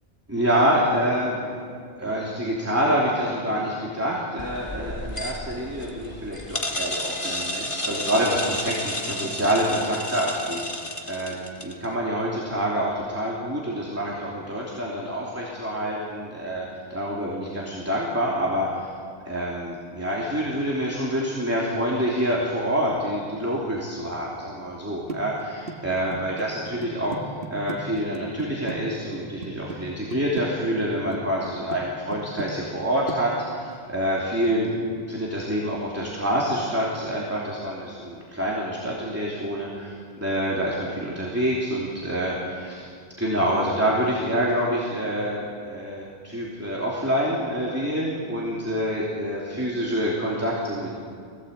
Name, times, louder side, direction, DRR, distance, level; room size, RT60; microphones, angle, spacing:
voice 1, 0.3-1.6 2.0-10.6 11.1-11.3 11.6-16.6 16.9-18.9 19.2-39.9 40.2-42.9 43.2-50.9, equal, 15° right, -5 dB, 3.0 m, -27 dB
sound 1, 4.4-11.9, left 1 dB, 30° left, 1.6 m, -32 dB
sound 2, 25.1-28.8 29.1-29.8 30.1-31.2 31.4-31.8 32.1-32.8 33.1-33.2, right 4 dB, 65° right, 1.8 m, -35 dB
22.0 x 17.0 x 8.2 m, 2.2 s
omnidirectional pair, 1.1 m